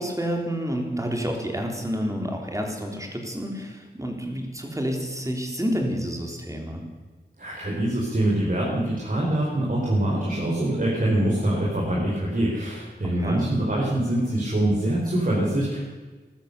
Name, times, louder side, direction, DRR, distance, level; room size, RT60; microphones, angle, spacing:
voice 1, 0.0-6.8 13.2-13.5, equal, 20° right, 1 dB, 3.7 m, -29 dB
voice 2, 7.4-15.8, right 1 dB, 50° right, -5 dB, 4.6 m, -24 dB
15.5 x 12.5 x 6.9 m, 1.4 s
wide cardioid pair, 50°, 18 cm